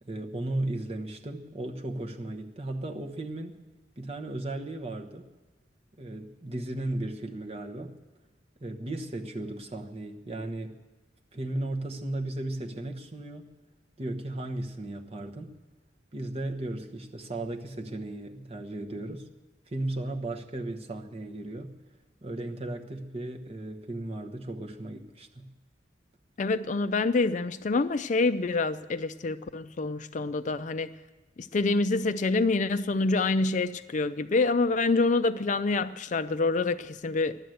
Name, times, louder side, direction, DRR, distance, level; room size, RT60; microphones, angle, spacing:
voice 1, 0.0-3.6 4.0-5.3 6.0-8.0 8.6-10.7 11.3-13.5 14.0-15.5 16.1-19.3 19.7-21.8 22.2-25.5, right 1 dB, 35° right, 2 dB, 1.1 m, -35 dB
voice 2, 26.4-30.9 31.4-37.4, left 3 dB, 40° left, 12 dB, 0.4 m, -26 dB
14.5 x 11.0 x 7.8 m, 1.2 s
head